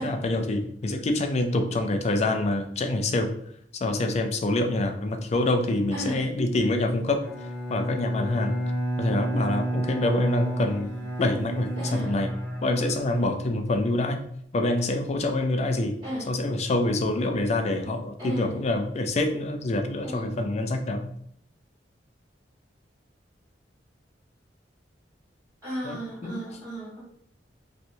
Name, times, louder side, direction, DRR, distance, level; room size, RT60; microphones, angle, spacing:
voice 1, 0.0-3.3 3.7-7.3 7.7-8.6 9.0-10.9 11.2-12.3 12.6-14.3 14.5-16.0 16.3-21.1 25.8-26.4, left 2 dB, 40° left, 5 dB, 0.4 m, -26 dB
voice 2, 5.9-6.2 11.8-12.1 16.0-16.3 18.2-18.6 20.0-20.4 25.6-27.0, equal, 15° right, -11 dB, 1.4 m, -34 dB
Bowed string instrument, 7.2-13.8, right 1 dB, 75° right, 1.0 m, -30 dB
3.1 x 2.7 x 2.6 m, 0.67 s
head